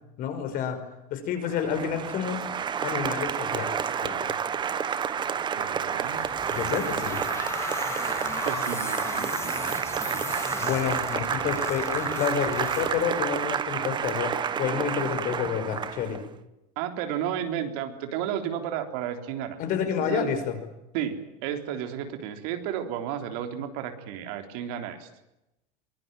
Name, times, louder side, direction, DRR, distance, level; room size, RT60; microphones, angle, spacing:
voice 1, 0.2-0.8 1.1-2.4 2.8-4.3 6.5-7.2 10.6-16.2 19.6-20.6, left 7 dB, 45° left, 7 dB, 5.5 m, -29 dB
Applause, 1.4-16.3, right 7 dB, 20° right, 1.2 m, -30 dB
voice 2, 5.6-6.3 8.4-10.2 16.8-19.6 20.0-20.3 20.9-25.1, right 9 dB, 65° right, 6 dB, 3.7 m, -33 dB
sound 1, 6.0-13.5, left 4 dB, 15° left, 2.8 m, -36 dB
24.0 x 21.0 x 9.1 m, 0.92 s
supercardioid pair, 150°, 20 cm